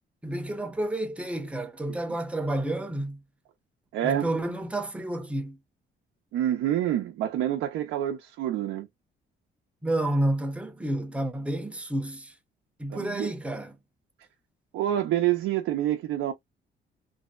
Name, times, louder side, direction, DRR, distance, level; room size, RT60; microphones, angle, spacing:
voice 1, 0.2-3.2 4.0-5.6 9.8-12.3 12.8-13.8, right 1 dB, 5° right, 0.6 m, -30 dB
voice 2, 3.9-4.3 6.3-8.9 12.9-13.3 14.7-16.3, right 12 dB, 90° right, 0.5 m, -27 dB
2.6 x 2.1 x 2.2 m
cardioid pair, 90°, 20 cm